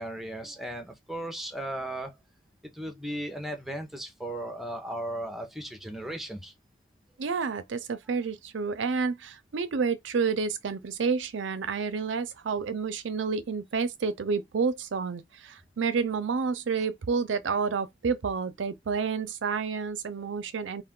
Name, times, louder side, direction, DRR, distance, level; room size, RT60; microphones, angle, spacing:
voice 1, 0.0-2.1 2.7-6.5, right 1 dB, ahead, 0.6 m, -36 dB
voice 2, 7.2-20.8, right 5 dB, 85° right, 0.5 m, -29 dB
2.4 x 2.4 x 3.6 m
head